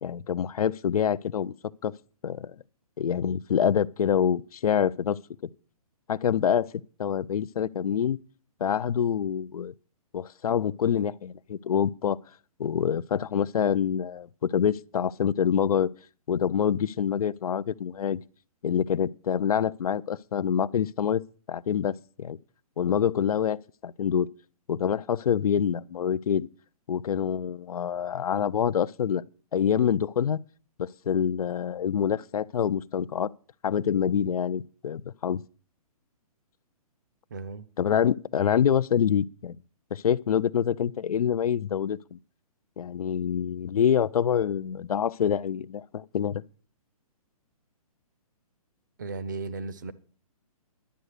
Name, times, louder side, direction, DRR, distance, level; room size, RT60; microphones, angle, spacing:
voice 1, 0.0-1.5 1.8-1.9 2.2-2.5 3.0-5.2 6.1-6.7 7.0-8.2 8.6-9.7 10.1-12.2 12.6-15.9 16.3-18.2 18.6-22.4 22.8-23.6 23.8-24.3 24.7-26.5 26.9-29.2 29.5-30.4 30.8-33.3 33.6-35.4 37.8-39.5 39.9-42.2 42.8-46.4, left 8 dB, 75° left, 0.5 m, -26 dB
voice 2, 37.3-37.7 49.0-49.9, right 4 dB, 30° right, 0.5 m, -35 dB
11.5 x 7.9 x 6.6 m
hypercardioid pair, 180°, 19 cm